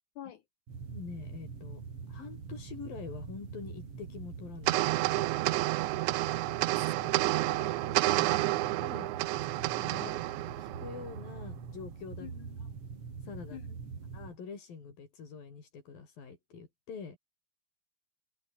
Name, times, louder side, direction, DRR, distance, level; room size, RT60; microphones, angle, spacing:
sound 1, 0.7-14.4, right 5 dB, 45° right, 4.2 m, -44 dB
voice 1, 0.9-1.8 2.1-5.4 8.1-8.5 8.8-9.2 9.7-10.2 10.6-12.3 13.2-13.6 14.1-17.2, left 5 dB, 85° left, 6.6 m, -45 dB
sound 2, 4.7-11.3, right 19 dB, 85° right, 1.7 m, -30 dB
voice 2, 6.8-7.8 10.0-10.2 12.2-12.7 13.5-13.8, left 10 dB, 65° left, 2.6 m, -48 dB
omnidirectional pair, 4.0 m